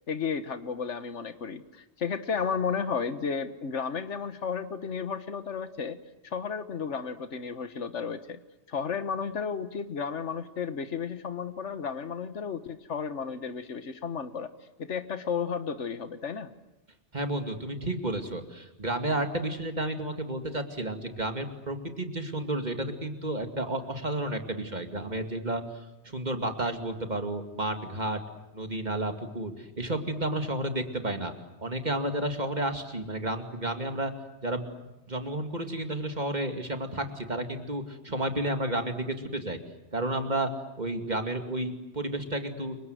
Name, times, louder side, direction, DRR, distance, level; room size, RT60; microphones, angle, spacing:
voice 1, 0.1-6.0 6.2-8.4 8.7-14.5 14.8-16.5, left 6 dB, 85° left, 11 dB, 1.6 m, -33 dB
voice 2, 17.1-28.2 28.5-31.3 31.6-34.1 34.4-34.7 35.1-39.6 39.9-40.5 40.8-42.8, right 1 dB, 40° right, 6 dB, 2.5 m, -31 dB
29.5 x 24.0 x 8.0 m, 0.99 s
omnidirectional pair, 1.2 m